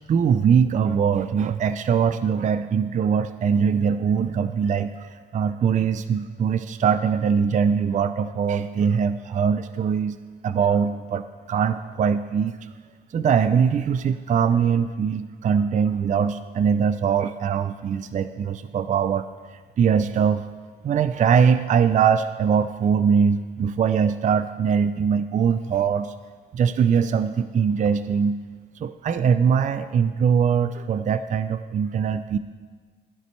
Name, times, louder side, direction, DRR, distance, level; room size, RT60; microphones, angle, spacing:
voice 1, 0.1-10.2 10.4-12.7 13.1-19.3 19.8-20.4 20.8-26.1 26.5-28.4 28.8-32.4, right 7 dB, 40° right, 12 dB, 0.4 m, -22 dB
15.0 x 10.5 x 3.2 m, 1.5 s
cardioid pair, 90°, 20 cm